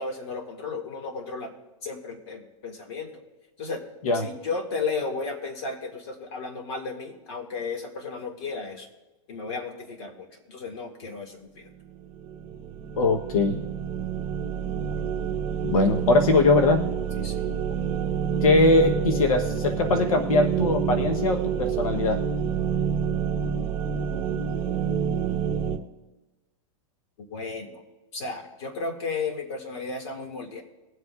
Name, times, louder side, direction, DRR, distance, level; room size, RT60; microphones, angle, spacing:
voice 1, 0.0-1.5 1.8-3.2 3.6-3.8 4.1-8.9 9.3-11.7 14.9-15.0 15.8-15.9 17.1-17.5 24.1-24.4 27.2-27.8 28.1-30.6, left 4 dB, 50° left, 3 dB, 2.0 m, -34 dB
sound 1, 11.9-25.8, right 8 dB, 30° right, 1.1 m, -28 dB
voice 2, 13.0-13.6 15.6-16.8 18.4-22.2, left 3 dB, 90° left, 5 dB, 1.0 m, -21 dB
21.5 x 8.0 x 2.4 m, 1.1 s
supercardioid pair, 165°, 18 cm